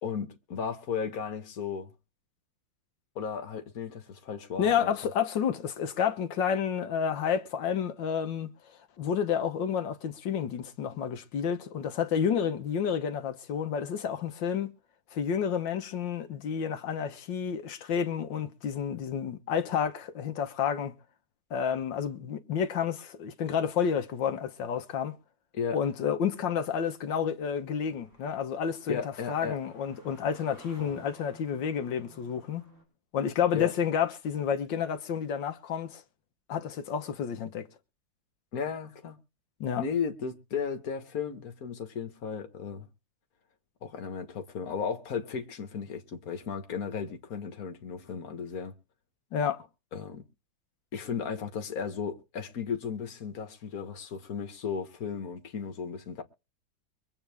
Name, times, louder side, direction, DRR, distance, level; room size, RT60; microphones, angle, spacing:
voice 1, 0.0-1.9 3.2-4.9 25.5-25.8 28.9-29.6 33.5-33.7 38.5-39.2 39.8-42.9 43.8-48.7 49.9-50.2 50.9-56.2, left 6 dB, 55° left, 1.9 m, -35 dB
voice 2, 4.6-8.5 9.0-14.7 15.1-20.9 21.5-25.1 25.7-32.7 33.1-36.0 36.5-37.7 39.6-39.8 49.3-49.7, left 7 dB, 80° left, 1.8 m, -30 dB
sound 1, 27.8-32.8, right 1 dB, 40° right, 5.8 m, -54 dB
24.0 x 8.6 x 3.5 m
omnidirectional pair, 2.0 m